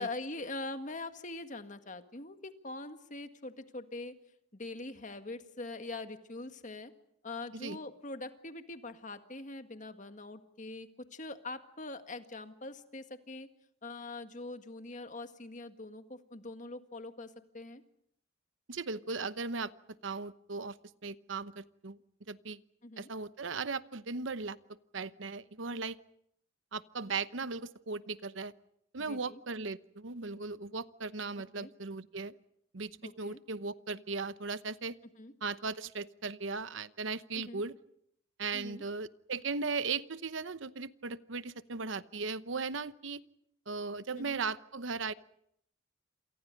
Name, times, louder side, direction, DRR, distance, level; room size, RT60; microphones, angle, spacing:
voice 1, 0.0-4.1 4.5-6.9 7.2-13.5 13.8-17.8 22.8-23.1 29.1-29.4 31.5-31.7 33.0-33.4 35.2-35.3 37.4-37.6 38.5-38.8 44.2-44.4, left 2 dB, 40° left, 8 dB, 1.8 m, -43 dB
voice 2, 18.7-19.7 20.0-20.8 21.0-22.0 22.3-22.6 23.0-24.6 24.9-26.0 26.7-28.5 28.9-32.4 32.7-35.0 35.4-37.8 38.4-43.2 43.7-45.1, right 4 dB, 70° right, 14 dB, 0.9 m, -37 dB
28.5 x 27.5 x 5.3 m, 0.72 s
head